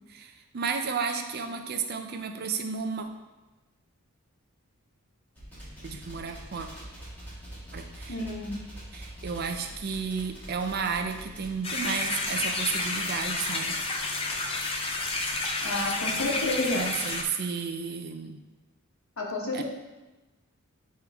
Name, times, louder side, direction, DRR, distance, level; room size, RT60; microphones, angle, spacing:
voice 1, 0.1-3.1 5.8-6.7 7.7-8.2 8.9-13.7 16.7-18.4 19.5-19.6, right 5 dB, 45° right, 6 dB, 0.5 m, -32 dB
sound 1, 5.4-11.6, equal, 10° left, 2.1 m, -44 dB
voice 2, 8.1-8.6 15.6-16.9 19.2-19.6, left 2 dB, 70° left, -1 dB, 1.2 m, -30 dB
sound 2, 11.6-17.2, left 3 dB, 25° left, 0.5 m, -30 dB
8.8 x 3.1 x 3.5 m, 1.1 s
head